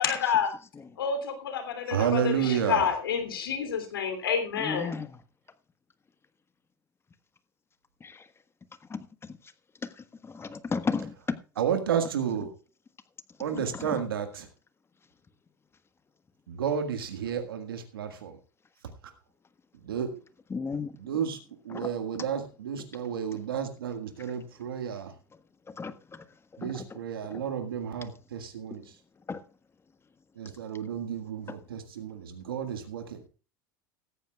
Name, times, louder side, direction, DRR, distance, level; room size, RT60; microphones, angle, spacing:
voice 1, 0.0-0.5 1.0-4.9, left 7 dB, 85° left, 3.1 m, -29 dB
voice 2, 1.9-2.9 11.6-12.5 13.4-14.5 16.5-18.3 19.8-20.1 21.0-21.4 21.6-25.1 26.6-28.8 30.4-33.2, right 8 dB, 85° right, 1.8 m, -31 dB
voice 3, 4.6-5.2 8.0-8.2 8.9-9.0 10.3-11.4 13.8-14.0 20.5-20.9 21.7-21.9 25.8-25.9 26.6-26.8 27.3-27.4 29.3-29.4 31.5-31.6, left 4 dB, 20° left, 1.4 m, -33 dB
17.0 x 14.5 x 2.4 m
hypercardioid pair, 85°, 12 cm